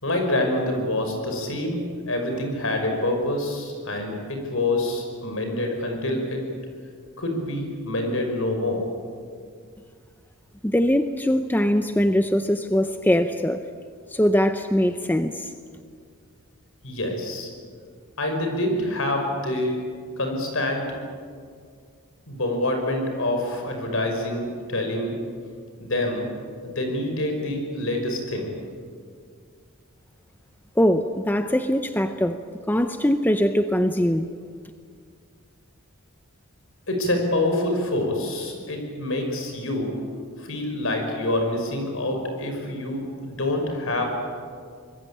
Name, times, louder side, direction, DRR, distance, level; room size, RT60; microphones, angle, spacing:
voice 1, 0.0-1.8 2.1-6.4 7.2-8.8 16.8-17.5 18.2-19.8 20.2-20.9 22.3-25.1 25.8-26.3 26.6-28.5 36.9-39.9 40.4-44.1, left 1 dB, 65° left, 4 dB, 5.7 m, -26 dB
voice 2, 10.6-13.6 14.1-15.5 30.8-32.4 32.7-34.3, equal, 10° left, 8 dB, 0.7 m, -22 dB
25.0 x 21.0 x 8.6 m, 2.1 s
head